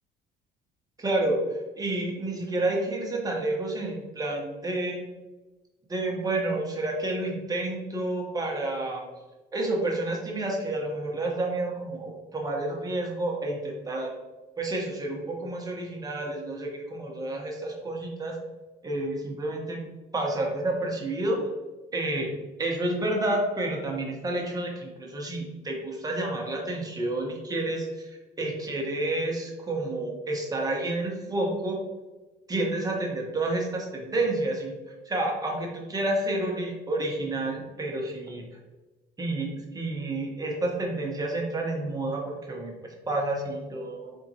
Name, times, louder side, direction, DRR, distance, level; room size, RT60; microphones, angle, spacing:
voice 1, 1.0-5.0 5.9-9.0 9.5-14.1 14.6-18.4 18.8-19.8 20.1-21.4 21.9-22.3 22.6-31.8 32.5-34.7 35.0-38.4 39.2-42.7 43.1-44.2, right 2 dB, 20° right, -1 dB, 1.0 m, -30 dB
4.2 x 3.6 x 2.8 m, 1.2 s
cardioid pair, 110°, 17 cm